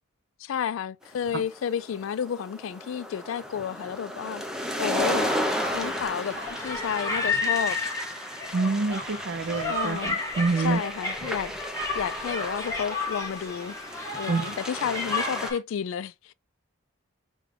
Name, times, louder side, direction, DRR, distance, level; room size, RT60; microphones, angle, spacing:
voice 1, 0.4-4.4 4.8-5.3 5.7-8.0 9.7-10.1 10.6-11.5 11.9-13.7 14.1-16.3, left 8 dB, 70° left, 0.3 m, -31 dB
sound 1, 1.3-15.5, equal, 5° right, 0.5 m, -34 dB
sound 2, 5.0-15.6, left 3 dB, 15° left, 0.9 m, -32 dB
voice 2, 8.5-10.8 14.3-14.5, right 3 dB, 55° right, 0.5 m, -27 dB
5.0 x 2.3 x 3.7 m
head